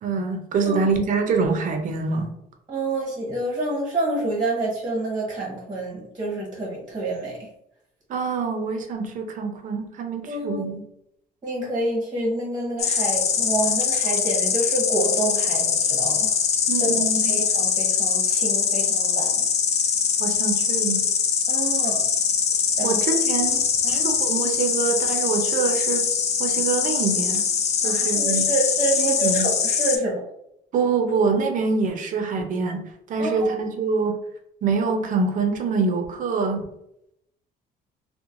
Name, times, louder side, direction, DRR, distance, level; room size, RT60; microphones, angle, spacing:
voice 1, 0.0-2.3 8.1-10.8 16.7-17.4 20.2-21.0 22.8-23.6 23.9-26.1 26.4-27.5 27.8-28.5 29.0-29.5 30.7-34.2 34.6-36.7, right 4 dB, 50° right, 4 dB, 0.5 m, -25 dB
voice 2, 2.7-7.4 10.3-10.7 11.4-16.3 16.8-16.9 17.2-19.3 21.5-22.0 22.8-23.0 23.8-24.1 27.8-30.2 33.2-33.6, right 2 dB, 25° right, -3 dB, 0.9 m, -28 dB
Insect, 12.8-30.0, left 6 dB, 40° left, 0.4 m, -22 dB
3.0 x 2.1 x 2.5 m, 0.80 s
cardioid pair, 110°, 17 cm